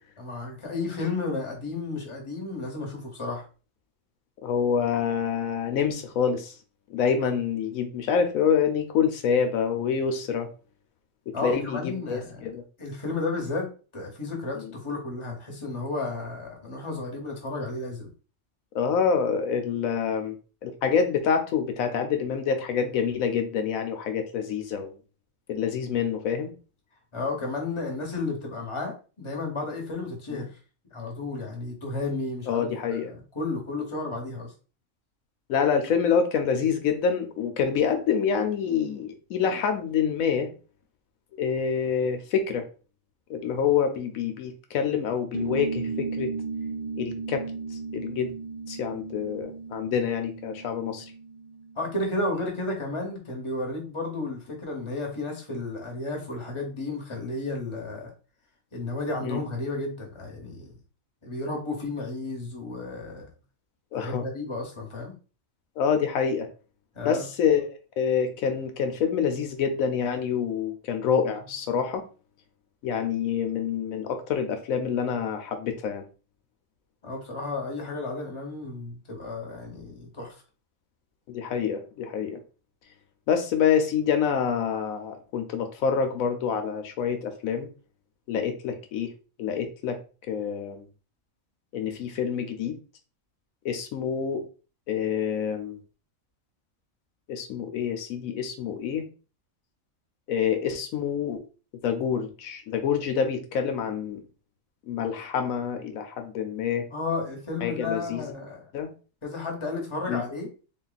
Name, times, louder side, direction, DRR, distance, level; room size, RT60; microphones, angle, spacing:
voice 1, 0.2-3.4 11.3-12.5 12.8-18.1 27.1-30.6 30.9-34.5 51.7-58.1 58.7-60.7 61.2-63.3 63.9-65.1 66.9-67.2 77.0-80.4 106.9-108.7 109.2-110.5, left 3 dB, 25° left, 1 dB, 1.1 m, -33 dB
voice 2, 4.4-6.5 6.9-10.5 11.4-12.6 18.7-20.4 20.6-24.9 25.5-26.5 30.3-30.4 32.5-33.1 35.5-40.5 41.4-42.6 43.3-46.3 47.0-47.4 47.9-48.3 48.7-51.0 59.2-59.4 63.9-64.2 65.8-66.5 67.0-67.7 68.0-72.0 72.8-76.0 81.3-82.4 83.3-87.7 88.3-89.1 89.4-90.0 90.3-90.9 91.7-92.8 93.6-94.4 94.9-95.8 97.3-99.0 100.3-101.4 101.8-104.2 104.9-106.8 107.6-108.2 108.7-108.9 110.1-110.2, left 7 dB, 85° left, 6 dB, 1.1 m, -26 dB
sound 1, 45.3-52.3, right 5 dB, 85° right, 0.3 m, -35 dB
3.7 x 2.3 x 4.0 m, 0.36 s
omnidirectional pair, 1.4 m